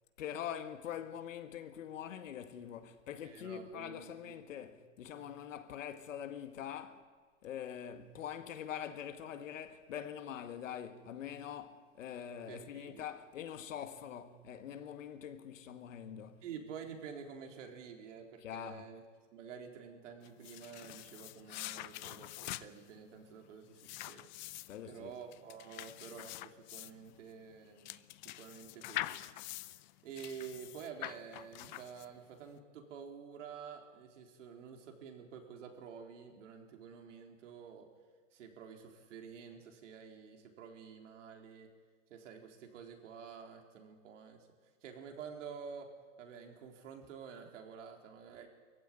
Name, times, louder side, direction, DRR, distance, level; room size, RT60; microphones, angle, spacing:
voice 1, 0.2-7.0 7.4-16.4 18.4-18.9 24.7-25.1, left 9 dB, 75° left, 2.1 m, -44 dB
voice 2, 3.2-4.7 12.5-13.1 16.4-19.0 19.3-24.3 24.8-28.0 28.2-29.2 30.0-37.9 38.3-41.7 42.1-44.5 44.8-45.9 46.2-48.5, right 7 dB, 70° right, 4.0 m, -49 dB
sound 1, 20.2-32.4, left 16 dB, 35° left, 0.5 m, -45 dB
22.0 x 15.5 x 9.8 m
supercardioid pair, 155°, 39 cm